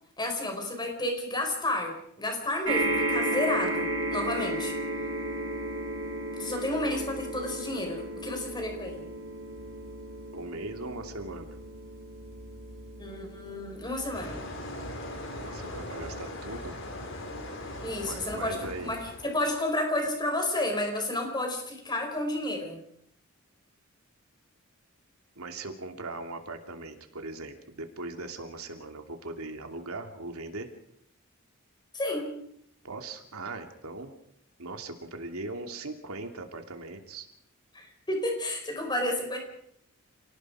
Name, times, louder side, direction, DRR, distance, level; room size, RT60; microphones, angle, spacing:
voice 1, 0.2-4.7 6.3-9.1 13.0-14.5 17.8-22.8 31.9-32.4 37.7-39.4, left 1 dB, 20° left, 3 dB, 5.3 m, -31 dB
sound 1, 2.6-17.2 18.0-18.1 18.3-18.4, right 1 dB, 70° right, 4.5 m, -34 dB
voice 2, 10.3-11.6 15.3-16.8 18.0-18.9 25.4-30.7 32.8-34.1 34.6-37.3, right 2 dB, 90° right, 5 dB, 2.8 m, -39 dB
Chainsaw sounds deep in the forest, 14.1-19.5, left 1 dB, 65° left, 4.9 m, -40 dB
29.0 x 18.5 x 5.0 m, 0.70 s
head